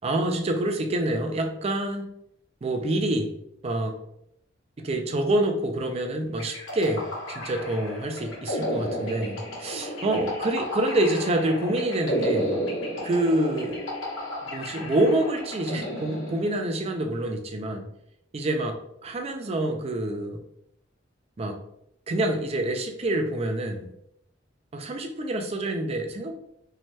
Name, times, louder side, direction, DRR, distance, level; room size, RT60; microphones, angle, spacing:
voice 1, 0.0-2.0 2.6-3.3 3.6-4.0 4.8-12.6 13.0-13.8 14.4-17.9 18.3-18.8 19.0-20.4 21.4-21.6 22.1-23.9 24.7-26.3, right 1 dB, 30° right, 4 dB, 0.4 m, -27 dB
sound 1, 6.4-16.8, equal, 75° left, 0.9 m, -32 dB
2.7 x 2.2 x 3.1 m, 0.76 s
head